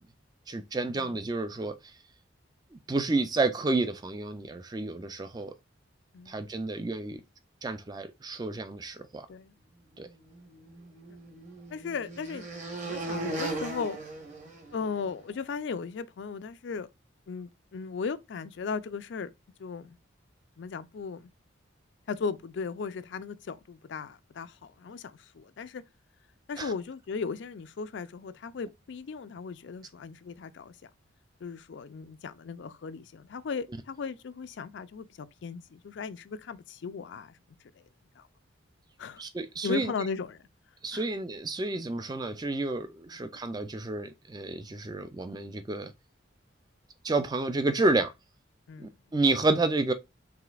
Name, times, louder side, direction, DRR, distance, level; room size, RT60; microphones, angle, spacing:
voice 1, 0.5-1.8 2.7-5.5 6.3-7.2 7.6-9.3 10.0-10.1 26.6-26.7 39.2-39.9 40.8-45.9 47.0-48.1 48.8-49.9, right 2 dB, 20° right, 0.3 m, -30 dB
sound 1, 10.5-15.1, right 2 dB, 40° right, 1.2 m, -37 dB
voice 2, 11.7-12.4 12.8-14.0 14.7-16.9 17.3-19.3 19.6-20.0 20.6-21.3 22.1-25.8 26.5-30.9 31.4-37.4 38.2-38.3 39.0-39.2 39.6-40.5 40.9-41.0 48.7-48.9, left 5 dB, 65° left, 0.4 m, -37 dB
4.9 x 3.3 x 2.3 m
head